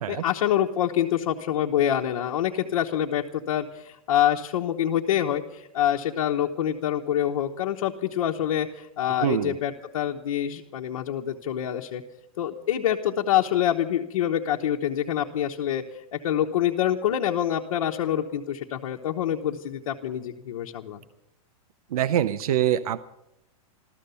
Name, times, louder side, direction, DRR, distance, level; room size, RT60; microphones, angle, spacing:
voice 1, 0.1-12.0 12.4-15.8 16.1-21.0, left 11 dB, 65° left, -1 dB, 1.0 m, -26 dB
voice 2, 9.2-9.6 21.9-23.0, right 11 dB, 85° right, 15 dB, 0.7 m, -24 dB
14.5 x 13.5 x 6.8 m, 0.85 s
supercardioid pair, 180°, 19 cm